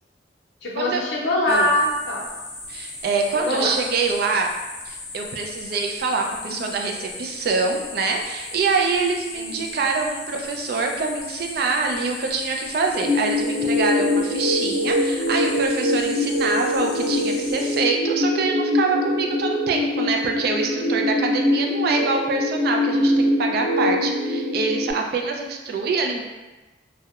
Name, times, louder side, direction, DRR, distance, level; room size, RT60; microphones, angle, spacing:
voice 1, 0.6-2.2 3.3-3.7 6.5-6.6 9.3-9.7, left 1 dB, 85° left, -2 dB, 0.6 m, -23 dB
sound 1, 1.5-17.8, left 2 dB, 20° left, 0.4 m, -37 dB
voice 2, 2.7-4.5 4.9-26.2, right 4 dB, 60° right, 3 dB, 0.3 m, -25 dB
sound 2, 13.0-24.9, left 1 dB, 85° right, 0.9 m, -23 dB
2.7 x 2.1 x 2.3 m, 1.1 s
head